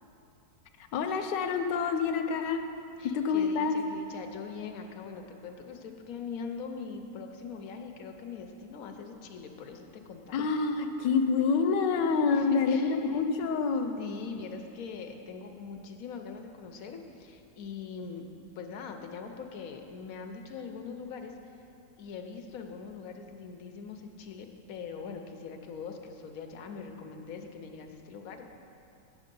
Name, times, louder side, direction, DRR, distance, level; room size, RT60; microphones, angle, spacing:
voice 1, 0.9-2.6 3.0-3.8 10.3-13.9, left 5 dB, 80° left, 7 dB, 1.2 m, -27 dB
voice 2, 3.0-10.3 12.3-13.0 14.0-18.3 18.6-21.3 22.0-28.4, left 5 dB, 65° left, 5 dB, 0.9 m, -42 dB
8.3 x 7.9 x 5.3 m, 2.8 s
omnidirectional pair, 1.9 m